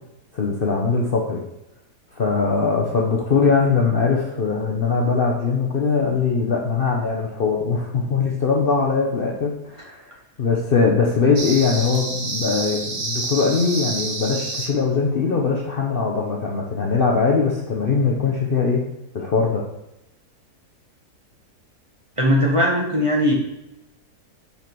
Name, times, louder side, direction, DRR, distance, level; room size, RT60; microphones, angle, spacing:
voice 1, 0.3-1.4 2.2-10.1 10.4-18.8 19.1-19.6, left 4 dB, 45° left, -1 dB, 0.8 m, -21 dB
sound 1, 11.4-14.7, right 3 dB, 45° right, 1.4 m, -28 dB
voice 2, 22.2-23.3, equal, 20° right, -2 dB, 1.1 m, -19 dB
5.8 x 5.8 x 4.5 m, 0.88 s
omnidirectional pair, 1.7 m